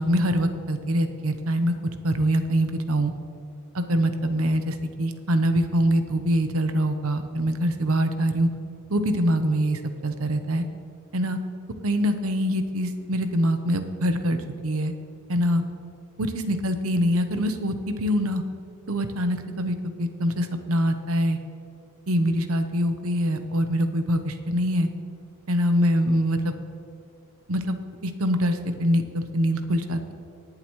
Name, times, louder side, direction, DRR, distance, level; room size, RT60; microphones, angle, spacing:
voice 1, 0.0-1.7 2.0-3.1 3.7-8.5 8.9-10.6 11.1-11.4 11.8-14.9 15.3-15.6 16.2-18.4 18.9-21.4 22.1-24.9 25.5-26.5 27.5-27.8 28.0-30.1, equal, 80° right, 8 dB, 0.9 m, -24 dB
19.5 x 7.7 x 3.2 m, 2.5 s
head